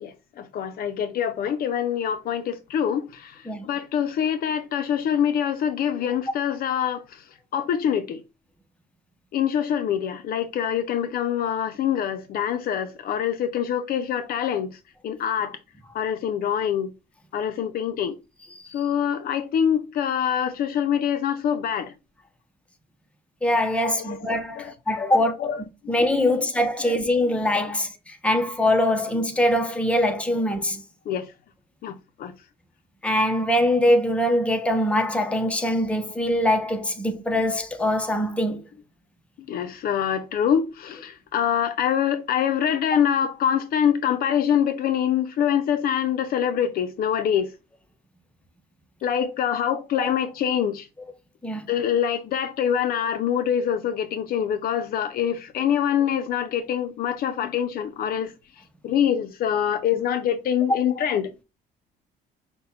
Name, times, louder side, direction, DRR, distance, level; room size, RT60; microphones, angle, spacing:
voice 1, 0.0-3.3 3.6-7.0 7.5-8.2 9.3-14.7 15.0-15.6 15.9-16.9 17.3-18.1 18.7-21.9 23.8-24.2 24.6-24.7 25.1-25.6 26.2-26.5 26.8-27.0 27.6-27.8 31.1-31.3 31.8-32.3 39.5-47.5 49.0-50.9 51.7-58.3 58.8-61.3, left 9 dB, 60° left, 0.6 m, -25 dB
voice 2, 23.4-25.3 25.9-30.8 33.0-38.6 50.0-50.1 51.4-51.7, left 1 dB, 5° left, 0.7 m, -23 dB
5.3 x 2.2 x 4.2 m
cardioid pair, 110°, 17 cm